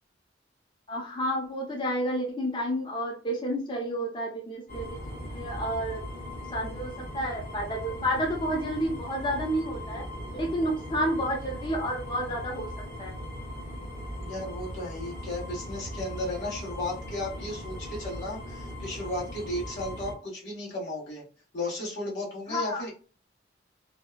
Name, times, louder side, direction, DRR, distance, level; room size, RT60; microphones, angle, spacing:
voice 1, 0.9-6.0 6.5-10.1 10.3-12.7 13.0-13.2 22.5-22.9, equal, 25° left, 0 dB, 0.4 m, -30 dB
sound 1, 4.7-20.1, equal, 55° left, 1.2 m, -39 dB
voice 2, 14.2-21.2 21.5-22.9, left 1 dB, 85° left, -5 dB, 1.2 m, -34 dB
2.6 x 2.1 x 2.3 m, 0.39 s
head